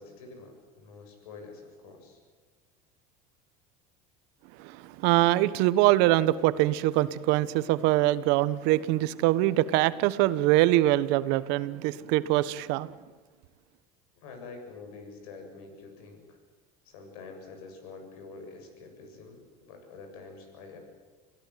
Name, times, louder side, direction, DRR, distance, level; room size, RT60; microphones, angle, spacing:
voice 1, 0.0-2.2 14.2-16.4 16.8-20.8, left 4 dB, 85° left, 4 dB, 7.5 m, -47 dB
voice 2, 4.6-12.9, right 16 dB, 70° right, 15 dB, 1.3 m, -24 dB
27.0 x 16.5 x 9.4 m, 1.4 s
supercardioid pair, 100°, 18 cm